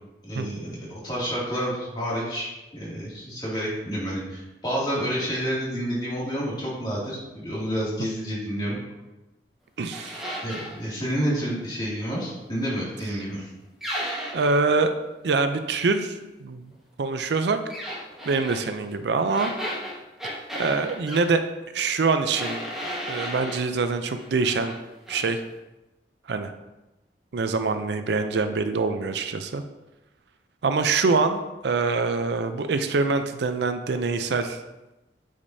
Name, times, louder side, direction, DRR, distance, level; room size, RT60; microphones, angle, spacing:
voice 1, 0.2-8.8 10.4-13.5, equal, 25° left, -7 dB, 2.3 m, -29 dB
voice 2, 9.8-10.3 14.3-14.9 15.2-16.2 16.4-16.6 17.0-17.6 18.3-19.5 20.5-21.4 21.7-22.6 23.1-24.7 25.1-25.4 26.3-26.5 27.3-29.6 30.6-34.6, right 4 dB, 75° right, 9 dB, 0.5 m, -24 dB
sound 1, 9.9-10.8 13.8-14.6 17.7-18.6 19.3-21.3 22.3-23.7 24.1-24.8 25.1-25.3, equal, ahead, 1.4 m, -34 dB
8.4 x 5.1 x 2.7 m, 1.0 s
head